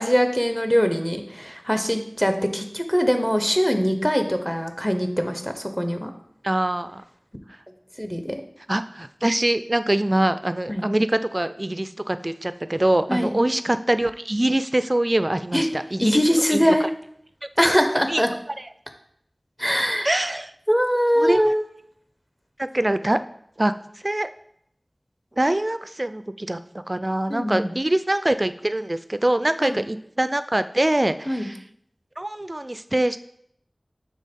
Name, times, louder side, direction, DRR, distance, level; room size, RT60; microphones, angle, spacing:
voice 1, 0.0-6.1 8.0-8.4 10.7-10.9 13.1-13.4 15.5-15.7 16.0-16.8 17.6-18.3 19.6-20.1 20.7-21.6 27.3-27.7 29.6-29.8 31.3-31.5, equal, 10° left, 6 dB, 0.8 m, -22 dB
voice 2, 6.4-7.0 8.7-16.2 16.5-16.9 18.1-18.2 20.0-20.5 21.2-21.4 22.6-23.2 23.6-23.7 24.0-24.3 25.4-26.6 26.9-31.6 32.2-33.2, right 1 dB, 35° right, 12 dB, 0.4 m, -23 dB
6.4 x 3.5 x 5.3 m, 0.69 s
wide cardioid pair, 45°, 0 cm